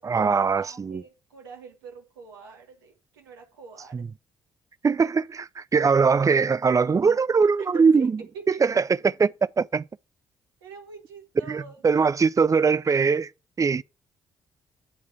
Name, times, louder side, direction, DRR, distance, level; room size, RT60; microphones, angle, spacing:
voice 1, 0.0-1.0 3.9-4.1 4.8-8.1 8.5-8.8 9.2-9.3 9.6-9.9 11.5-13.3 13.6-13.8, right 5 dB, 30° right, 0.4 m, -21 dB
voice 2, 0.6-4.0 7.6-8.7 10.6-12.0, right 5 dB, 85° right, 1.7 m, -44 dB
10.0 x 3.9 x 7.0 m
hypercardioid pair, 40°, 12 cm